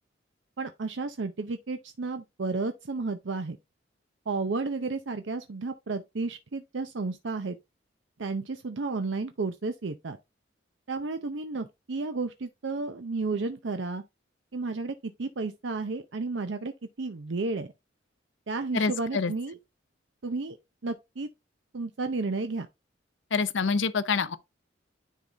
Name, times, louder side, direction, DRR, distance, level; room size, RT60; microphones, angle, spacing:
voice 1, 0.6-3.6 4.3-7.6 8.2-10.2 10.9-14.0 14.5-16.7 17.0-17.7 18.5-19.6 20.2-20.6 20.8-21.3 21.7-22.7, right 3 dB, 75° right, 0.6 m, -32 dB
voice 2, 18.7-19.3 23.3-24.4, left 5 dB, 80° left, 0.7 m, -26 dB
10.0 x 4.0 x 3.3 m
head